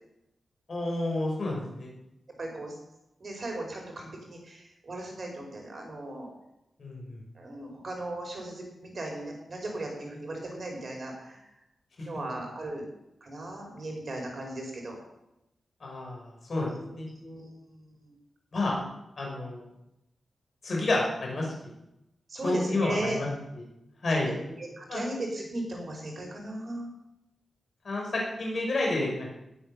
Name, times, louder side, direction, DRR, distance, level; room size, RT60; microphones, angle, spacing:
voice 1, 0.7-1.9 6.8-7.2 12.0-12.1 15.8-17.1 18.5-18.8 19.2-19.7 20.6-21.5 22.4-23.3 23.5-23.6 24.0-24.3 24.9-25.0 27.8-29.3, left 2 dB, 45° left, -2 dB, 5.8 m, -30 dB
voice 2, 2.4-2.8 3.2-6.3 7.4-11.4 12.0-12.9 13.2-15.0 16.5-18.1 22.3-23.2 24.2-26.9, right 1 dB, 40° right, 1 dB, 5.0 m, -37 dB
19.0 x 9.0 x 6.9 m, 0.88 s
wide cardioid pair, 160°, 0 cm